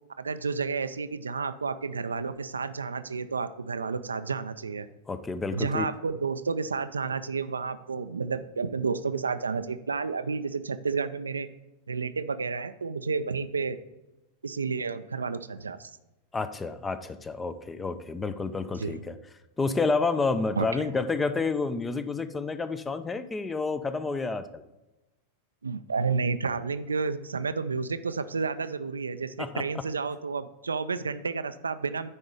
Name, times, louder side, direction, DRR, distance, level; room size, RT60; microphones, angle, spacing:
voice 1, 0.2-4.9 5.5-11.5 11.9-13.8 14.4-15.9 18.8-19.0 20.6-20.7 25.6-32.1, right 4 dB, 75° right, 12 dB, 0.4 m, -31 dB
voice 2, 5.1-5.9 16.3-19.2 19.6-24.6 29.4-29.6, left 4 dB, 15° left, 12 dB, 0.5 m, -29 dB
9.7 x 4.4 x 5.0 m, 1.0 s
figure-of-eight pair, 90°, 0 cm